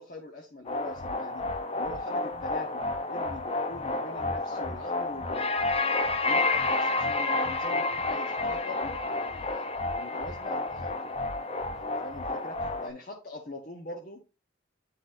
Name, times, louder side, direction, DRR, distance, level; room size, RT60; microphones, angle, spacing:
voice 1, 0.0-1.4 1.7-5.6 6.2-11.1 11.7-14.2, left 2 dB, 45° left, 0 dB, 1.0 m, -43 dB
sound 1, 0.7-12.9, left 2 dB, 30° left, 0.5 m, -30 dB
9.7 x 4.1 x 2.5 m, 0.29 s
head